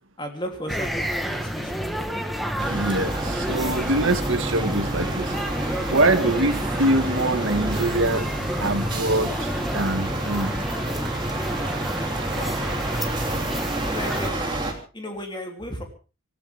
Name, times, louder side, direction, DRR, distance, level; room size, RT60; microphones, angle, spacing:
voice 1, 0.2-1.8 12.3-12.6 13.8-15.8, equal, 20° left, 3 dB, 3.2 m, -34 dB
sound 1, 0.7-14.3, equal, ahead, 1.6 m, -30 dB
sound 2, 2.6-14.7, right 1 dB, 20° right, 3.0 m, -29 dB
voice 2, 2.7-8.3 8.6-10.5 12.3-12.4, right 2 dB, 60° right, 7 dB, 2.1 m, -24 dB
26.0 x 14.5 x 3.6 m, 0.35 s
head